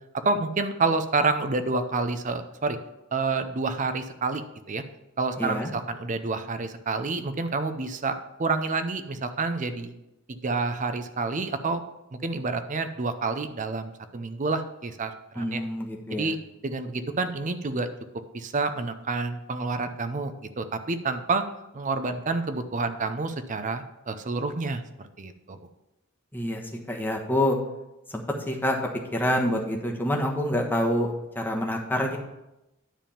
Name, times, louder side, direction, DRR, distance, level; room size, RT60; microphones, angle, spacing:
voice 1, 0.2-2.8 3.1-4.4 4.7-4.8 5.2-9.9 10.4-11.8 12.2-15.6 16.1-16.4 16.6-17.9 18.3-21.4 21.7-25.6, right 3 dB, 35° right, 10 dB, 0.6 m, -28 dB
voice 2, 5.4-5.7 15.3-16.3 26.3-26.6 26.9-27.6 28.1-28.8 29.1-32.2, left 1 dB, 10° left, 0 dB, 1.1 m, -27 dB
10.0 x 3.6 x 7.1 m, 0.93 s
head